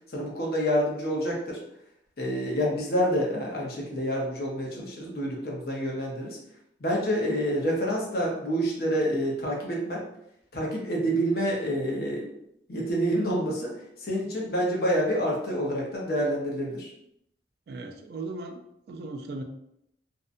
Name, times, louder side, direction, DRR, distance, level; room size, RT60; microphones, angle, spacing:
voice 1, 0.1-1.6 2.2-6.4 6.8-10.0 10.5-12.3 12.7-13.7 14.0-16.9, equal, 60° left, -2 dB, 0.7 m, -27 dB
voice 2, 17.7-18.6 18.9-19.4, right 2 dB, 60° right, 5 dB, 0.3 m, -37 dB
2.6 x 2.1 x 2.5 m, 0.77 s
head